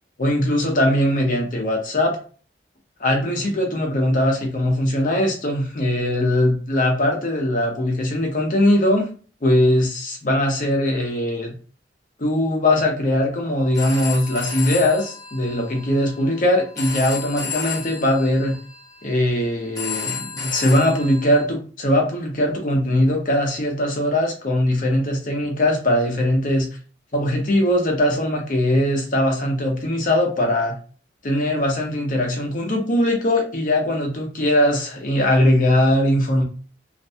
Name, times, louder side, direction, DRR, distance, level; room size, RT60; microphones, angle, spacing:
voice 1, 0.2-2.2 3.0-9.1 9.4-11.5 12.2-18.6 19.0-26.7 27.1-30.7 31.2-36.4, left 1 dB, 45° left, 1 dB, 0.7 m, -20 dB
Telephone, 13.6-21.4, left 5 dB, 20° left, 0.9 m, -33 dB
2.5 x 2.1 x 2.6 m, 0.39 s
head